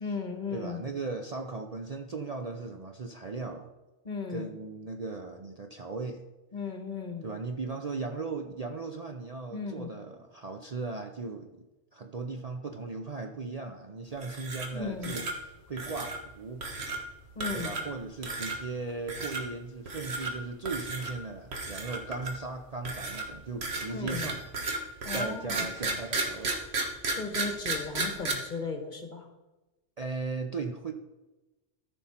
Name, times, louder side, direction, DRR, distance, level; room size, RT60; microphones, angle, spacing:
voice 1, 0.0-0.8 4.0-4.5 6.5-7.3 9.5-9.9 14.7-15.2 17.3-17.8 23.9-24.3 25.0-25.7 27.1-29.3, left 5 dB, 45° left, 5 dB, 1.2 m, -36 dB
voice 2, 0.5-3.7 4.3-6.2 7.2-11.5 11.9-16.6 17.5-24.4 25.1-26.6 30.0-30.9, right 4 dB, 45° right, 4 dB, 0.6 m, -37 dB
sound 1, 14.2-14.8 15.0-15.3 15.8-16.2 16.6-17.0 17.4-17.9 18.2-18.6 19.1-19.4 19.9-20.3 20.7-21.1 21.5-22.4 22.9-28.3, right 3 dB, 60° right, 1.6 m, -33 dB
13.5 x 5.5 x 4.3 m, 1.1 s
omnidirectional pair, 1.2 m